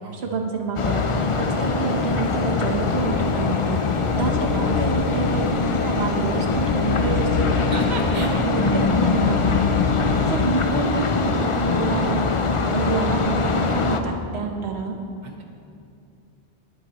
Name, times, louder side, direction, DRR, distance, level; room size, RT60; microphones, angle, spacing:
voice 1, 0.1-7.8 8.1-9.6 10.3-12.2 12.7-15.0, right 4 dB, 85° right, 2 dB, 1.3 m, -27 dB
sound 1, 0.8-14.0, left 4 dB, 40° left, 0.6 m, -23 dB
sound 2, 2.9-10.5, left 6 dB, 65° left, 0.8 m, -29 dB
voice 2, 7.7-8.3 9.9-10.4 12.7-12.9 15.2-15.4, right 3 dB, 45° right, 2 dB, 1.2 m, -36 dB
21.5 x 8.1 x 3.0 m, 2.5 s
omnidirectional pair, 1.0 m